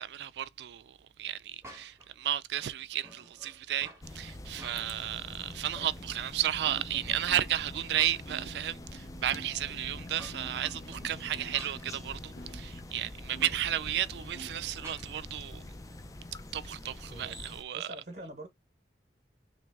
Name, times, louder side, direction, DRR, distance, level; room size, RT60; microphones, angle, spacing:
voice 1, 0.0-3.9 4.1-15.6 16.5-17.9, right 11 dB, 75° right, 0.3 m, -33 dB
sound 1, 1.6-2.1 2.6-4.1 4.4-5.2 5.5-6.3 6.7-8.4 8.8-8.9 9.9-11.9 13.4-13.6 14.8-15.1, right 1 dB, 15° right, 1.0 m, -50 dB
sound 2, 4.0-17.6, left 2 dB, 20° left, 0.4 m, -45 dB
sound 3, 7.3-14.6, right 1 dB, 65° left, 1.0 m, -51 dB
voice 2, 17.7-18.5, right 1 dB, 50° right, 1.1 m, -45 dB
3.2 x 3.2 x 3.5 m
head